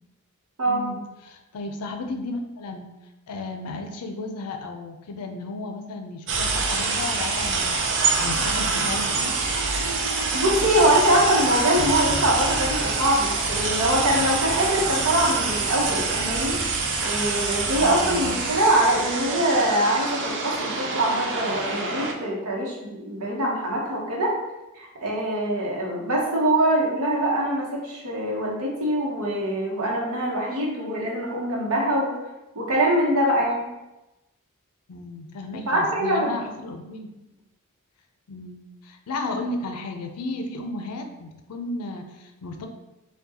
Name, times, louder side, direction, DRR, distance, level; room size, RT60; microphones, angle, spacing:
voice 1, 0.7-2.9 3.3-9.3 17.7-18.4 34.9-37.1 38.3-42.7, left 2 dB, 85° left, 5 dB, 0.5 m, -34 dB
sound 1, 6.3-22.1, right 4 dB, 55° right, 0.5 m, -26 dB
voice 2, 10.3-16.6 17.0-24.3 24.7-32.1 32.5-33.7 35.7-36.3, right 1 dB, 75° right, -2 dB, 0.9 m, -23 dB
4.5 x 2.3 x 2.8 m, 0.99 s
head